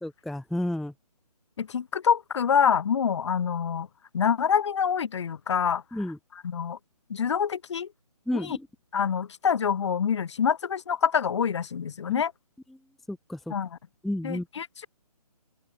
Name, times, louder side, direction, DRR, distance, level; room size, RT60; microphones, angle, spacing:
voice 1, 0.0-0.9 5.9-6.2 8.3-8.7 12.1-12.2 13.1-13.5 14.0-14.5, left 1 dB, ahead, 0.7 m, -31 dB
voice 2, 1.6-3.9 4.1-5.8 6.4-6.8 7.1-7.9 8.4-8.6 8.9-12.3 13.5-13.7 14.2-14.9, left 7 dB, 45° left, 1.4 m, -26 dB
open air
figure-of-eight pair, 145°, 20 cm